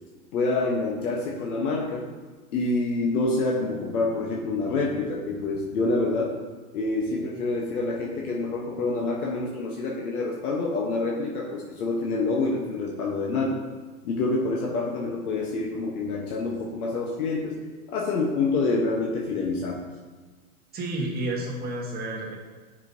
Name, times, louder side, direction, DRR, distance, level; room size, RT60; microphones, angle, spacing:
voice 1, 0.3-2.1 2.5-6.3 6.7-13.6 14.0-17.6 17.9-19.8, left 3 dB, 75° left, -1 dB, 1.1 m, -27 dB
voice 2, 20.7-22.4, right 1 dB, 20° right, -3 dB, 1.4 m, -30 dB
8.1 x 5.5 x 2.7 m, 1.4 s
hypercardioid pair, 135°, 44 cm